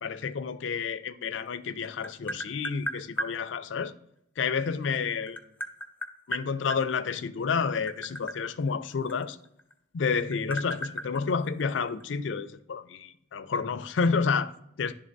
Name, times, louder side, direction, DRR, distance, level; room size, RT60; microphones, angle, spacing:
voice 1, 0.0-3.9 4.4-5.4 6.3-9.4 9.9-14.9, left 5 dB, 90° left, 0.4 m, -30 dB
Tap, 1.5-3.3 4.7-6.8 7.6-9.7 10.0-12.0, equal, 10° left, 0.5 m, -35 dB
10.5 x 3.7 x 2.6 m
head